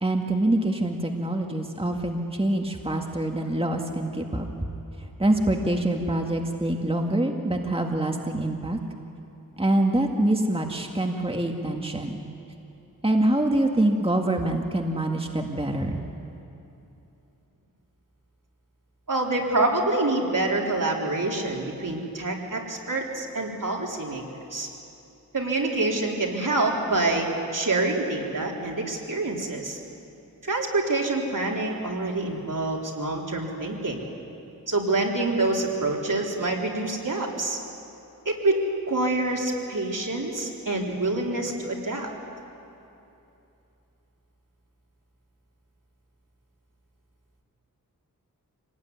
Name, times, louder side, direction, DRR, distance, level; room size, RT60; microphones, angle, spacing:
voice 1, 0.0-4.5 5.2-8.8 9.6-12.2 13.0-16.0, right 1 dB, 15° right, 2 dB, 1.9 m, -25 dB
voice 2, 19.1-24.2 24.5-24.7 25.3-29.8 30.4-34.0 34.7-37.6 38.3-38.6 38.9-42.1, right 2 dB, 65° right, -1 dB, 3.9 m, -26 dB
26.5 x 19.0 x 9.6 m, 2.8 s
wide cardioid pair, 60°, 34 cm